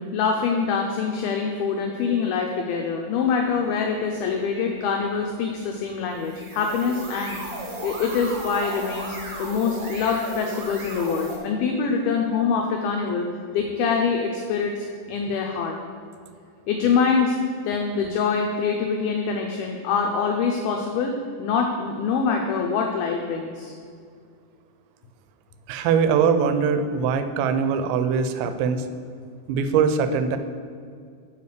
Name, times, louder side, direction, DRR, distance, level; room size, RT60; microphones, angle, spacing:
voice 1, 0.0-7.4 7.8-13.3 13.5-15.8 16.7-17.4 17.6-23.7, left 5 dB, 90° left, 2 dB, 2.1 m, -25 dB
sound 1, 6.1-11.4, right 1 dB, 65° right, 1.4 m, -35 dB
voice 2, 25.7-28.9 29.5-30.4, right 6 dB, 90° right, 9 dB, 2.9 m, -22 dB
8.5 x 4.6 x 6.5 m, 2.2 s
omnidirectional pair, 5.1 m